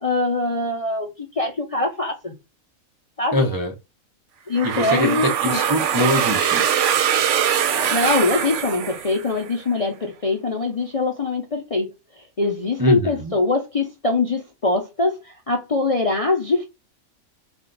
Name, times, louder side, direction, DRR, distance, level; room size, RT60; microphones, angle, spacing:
voice 1, 0.0-2.3 3.2-3.5 4.5-5.6 7.9-11.9 12.2-16.7, left 3 dB, 40° left, 0.5 m, -23 dB
voice 2, 3.3-3.7 4.6-6.6 12.8-13.3, left 1 dB, 30° right, 0.4 m, -23 dB
sound 1, 4.6-9.5, right 9 dB, 65° right, 0.9 m, -22 dB
4.4 x 2.4 x 3.8 m
omnidirectional pair, 1.4 m